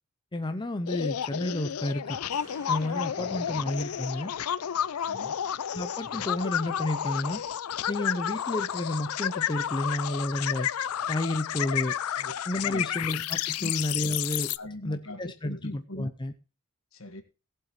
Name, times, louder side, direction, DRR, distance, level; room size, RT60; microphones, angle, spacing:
voice 1, 0.3-2.2 2.7-4.3 5.7-7.4 7.9-10.7 11.1-12.0 12.5-14.5 14.8-16.3, left 1 dB, 20° left, 8 dB, 0.6 m, -31 dB
sound 1, 0.9-14.6, left 9 dB, 85° left, 0.5 m, -31 dB
sound 2, 2.3-8.9 9.4-9.5, equal, 15° right, 4.0 m, -55 dB
voice 2, 5.1-5.4 12.2-12.8 13.6-13.7 14.6-16.1 16.9-17.2, left 1 dB, 65° left, 8 dB, 1.7 m, -41 dB
17.5 x 7.9 x 3.1 m, 0.33 s
head